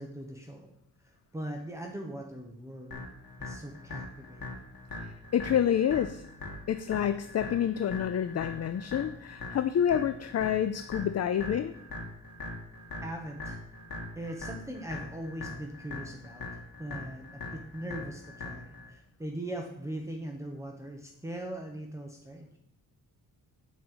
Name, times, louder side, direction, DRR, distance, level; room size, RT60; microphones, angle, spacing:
voice 1, 0.0-3.1 3.4-4.6 13.0-13.6 14.1-22.6, right 1 dB, 10° right, 1 dB, 1.1 m, -40 dB
sound 1, 2.9-18.9, left 2 dB, 65° left, 2.6 m, -42 dB
voice 2, 5.0-6.2 6.7-11.7, left 9 dB, 45° left, 11 dB, 0.5 m, -28 dB
9.4 x 5.5 x 7.9 m, 0.74 s
wide cardioid pair, 140°, 37 cm